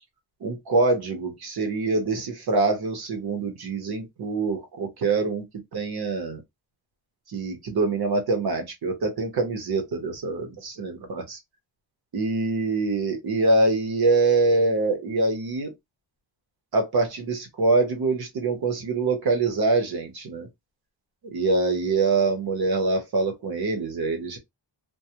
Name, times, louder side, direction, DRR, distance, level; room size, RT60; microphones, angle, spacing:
voice 1, 0.4-5.4 5.7-6.4 7.3-11.4 12.1-15.7 16.7-20.5 21.3-24.4, right 3 dB, 55° right, 0.9 m, -24 dB
2.3 x 2.1 x 2.7 m
wide cardioid pair, 155°, 45 cm